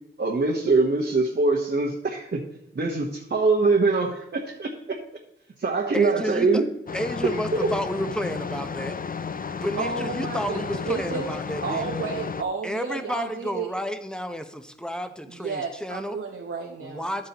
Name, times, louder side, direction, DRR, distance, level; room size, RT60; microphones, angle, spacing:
voice 1, 0.2-2.4 2.7-5.0 5.6-6.6, right 3 dB, 55° right, -1 dB, 1.3 m, -23 dB
voice 2, 5.9-6.6 6.9-9.0 9.6-12.0 12.6-16.2 16.8-17.3, equal, 5° left, 7 dB, 1.0 m, -31 dB
sound 1, 6.9-12.4, left 5 dB, 40° left, 0.5 m, -33 dB
voice 3, 9.8-11.3 11.6-13.7 15.3-17.1, right 5 dB, 80° right, 0 dB, 1.0 m, -32 dB
11.0 x 8.7 x 3.0 m, 0.83 s
cardioid pair, 65°, 21 cm